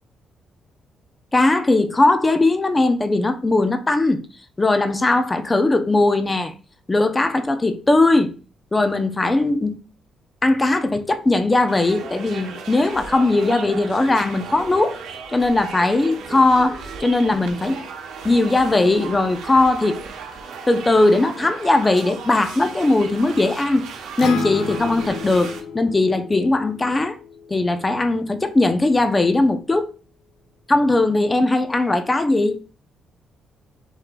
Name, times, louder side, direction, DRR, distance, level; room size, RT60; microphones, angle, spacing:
voice 1, 1.3-4.2 4.6-6.5 6.9-8.3 8.7-9.8 10.4-15.0 15.3-17.8 18.2-20.0 20.7-23.9 24.2-27.2 27.5-29.9 30.7-32.6, left 2 dB, 20° left, 0.6 m, -19 dB
sound 1, 11.7-25.6, right 5 dB, 85° right, 0.9 m, -36 dB
Acoustic guitar, 24.2-28.4, left 6 dB, 85° left, 0.7 m, -34 dB
5.7 x 3.7 x 2.3 m
cardioid pair, 120°, 0 cm